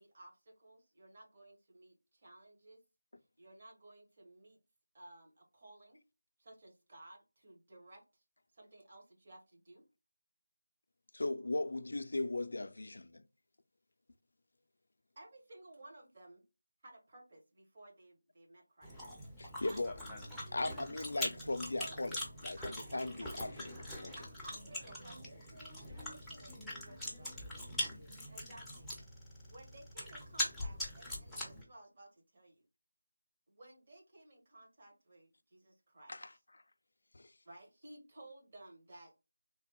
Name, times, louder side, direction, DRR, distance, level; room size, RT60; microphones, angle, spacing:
voice 1, 0.0-2.8 3.4-4.6 4.9-6.0 6.4-8.2 8.5-9.8 15.2-16.4 16.8-18.9 19.7-19.8 21.8-22.0 22.6-23.9 24.1-25.4 28.3-28.9 29.5-32.6 33.5-36.1 37.4-39.2, right 1 dB, 35° right, 1.1 m, -57 dB
voice 2, 11.1-13.2 19.4-20.0 20.5-23.7 24.0-24.1 36.1-36.3 37.1-37.3, left 2 dB, 70° left, 0.3 m, -38 dB
Chewing mastication, 18.8-31.6, left 1 dB, ahead, 0.5 m, -43 dB
voice 3, 24.7-28.2, equal, 65° right, 1.4 m, -60 dB
3.2 x 2.1 x 2.8 m
figure-of-eight pair, 170°, 0 cm